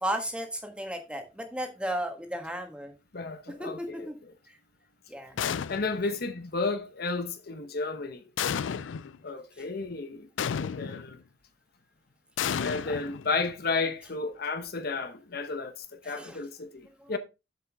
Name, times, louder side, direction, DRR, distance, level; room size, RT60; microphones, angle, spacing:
voice 1, 0.0-2.9 3.6-4.2 4.5-4.6 5.1-5.4 16.0-16.4 17.0-17.1, right 1 dB, 5° right, 1.5 m, -34 dB
voice 2, 3.1-4.1 5.7-8.2 9.2-10.3 10.6-11.2 12.6-17.2, left 3 dB, 55° left, 0.9 m, -32 dB
sound 1, 5.4-6.1 8.4-9.2 10.4-11.2 12.4-13.6, left 7 dB, 85° left, 0.4 m, -32 dB
7.3 x 7.1 x 3.5 m
head